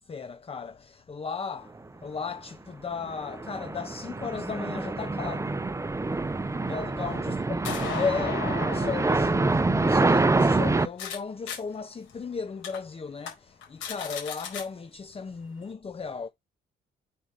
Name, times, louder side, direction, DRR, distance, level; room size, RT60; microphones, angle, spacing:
voice 1, 0.0-5.6 6.6-7.4 7.7-16.3, left 5 dB, 30° left, 0.8 m, -35 dB
sound 1, 3.0-10.9, right 3 dB, 15° right, 0.7 m, -26 dB
sound 2, 6.4-11.2 11.5-11.6 12.1-12.2 12.6-12.8 13.2-13.3 13.6-14.6, left 7 dB, 90° left, 4.6 m, -38 dB
7.5 x 4.7 x 4.0 m
cardioid pair, 90°, 20 cm